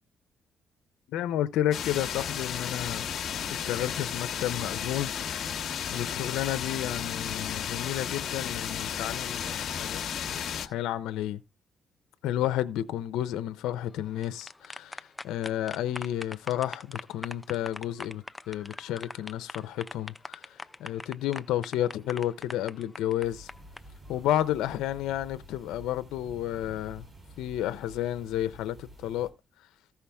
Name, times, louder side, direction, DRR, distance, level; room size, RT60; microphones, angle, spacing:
voice 1, 1.1-3.0 3.5-5.1 5.9-10.0 10.3-11.4 12.2-23.5 24.1-27.0 27.4-29.3, left 12 dB, 90° left, 0.6 m, -31 dB
sound 1, 1.7-10.7, left 8 dB, 65° left, 1.1 m, -33 dB
sound 2, 14.0-23.8, left 2 dB, 15° left, 0.5 m, -42 dB
sound 3, 23.2-29.3, equal, 25° right, 5.4 m, -50 dB
14.5 x 5.7 x 3.4 m
cardioid pair, 90°, 0 cm